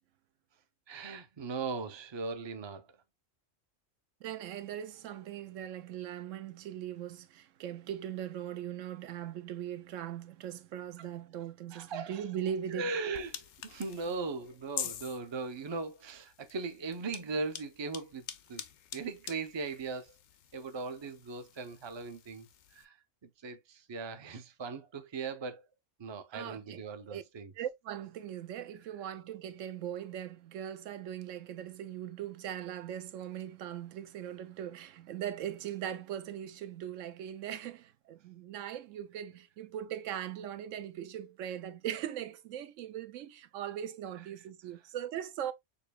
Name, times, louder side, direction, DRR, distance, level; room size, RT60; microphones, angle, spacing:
voice 1, 0.9-2.9 11.7-12.2 12.7-18.2 18.5-18.6 18.9-20.1 20.5-22.5 22.7-23.0 23.4-25.7 26.0-27.5, right 4 dB, 30° right, 0.6 m, -38 dB
voice 2, 4.2-12.9 26.3-26.8 27.1-27.2 27.5-45.5, right 10 dB, 75° right, 0.9 m, -40 dB
sound 1, 13.1-22.9, left 9 dB, 90° left, 1.1 m, -46 dB
6.8 x 2.9 x 2.2 m
omnidirectional pair, 1.3 m